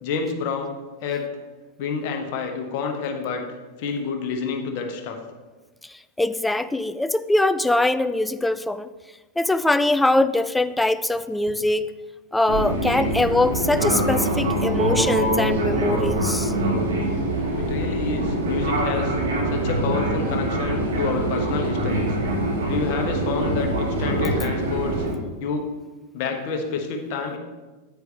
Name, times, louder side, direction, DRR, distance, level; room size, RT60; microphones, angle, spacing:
voice 1, 0.0-1.3 1.8-3.4 3.8-5.2 17.6-19.1 19.5-22.2 22.7-25.0 25.4-25.7 26.1-27.4, left 5 dB, 45° left, 4 dB, 1.2 m, -28 dB
voice 2, 6.2-8.9 9.4-11.9 12.3-16.5, left 2 dB, 5° left, 14 dB, 0.3 m, -22 dB
Fixed-wing aircraft airplane, 12.5-25.1, right 1 dB, 65° right, 2.0 m, -24 dB
9.4 x 8.0 x 3.3 m, 1.3 s
figure-of-eight pair, 90°, 0 cm